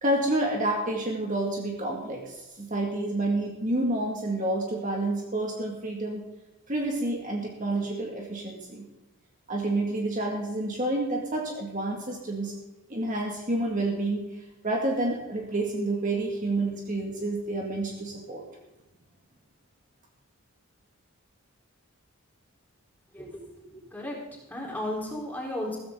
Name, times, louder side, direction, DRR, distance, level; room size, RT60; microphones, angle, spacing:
voice 1, 0.0-6.2 6.7-8.8 9.5-12.5 12.9-14.3 14.6-18.4, right 2 dB, 35° right, -1 dB, 2.2 m, -29 dB
voice 2, 23.1-24.2 24.5-25.8, left 1 dB, 10° left, -3 dB, 4.2 m, -34 dB
15.5 x 14.5 x 3.9 m, 1.0 s
head